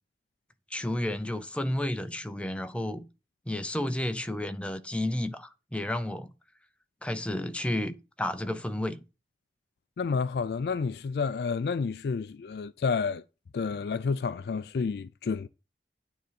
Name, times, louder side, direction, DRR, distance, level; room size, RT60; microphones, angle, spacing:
voice 1, 0.7-3.1 3.5-6.3 7.0-9.0, left 1 dB, 5° left, 0.6 m, -31 dB
voice 2, 10.0-13.2 13.5-15.5, left 5 dB, 65° left, 0.3 m, -30 dB
9.1 x 3.8 x 6.9 m
head